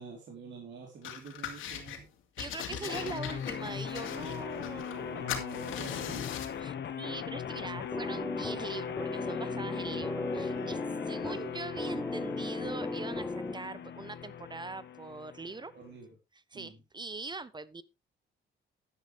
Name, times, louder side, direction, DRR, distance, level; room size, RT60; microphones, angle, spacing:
voice 1, 0.0-2.1 2.7-3.1 4.9-6.2 10.2-11.8 15.7-16.1 16.5-16.8, right 4 dB, 65° right, 3.8 m, -48 dB
sound 1, 1.0-2.0 2.4-5.0 5.3-6.6, left 9 dB, 85° left, 2.7 m, -40 dB
voice 2, 2.4-5.3 6.6-10.8 11.1-15.7 16.5-17.8, right 3 dB, 20° right, 0.9 m, -42 dB
sound 2, 2.9-15.9, left 7 dB, 60° left, 1.7 m, -39 dB
sound 3, 7.9-13.9, left 2 dB, 10° left, 0.5 m, -36 dB
11.0 x 11.0 x 3.4 m
cardioid pair, 90°, 20 cm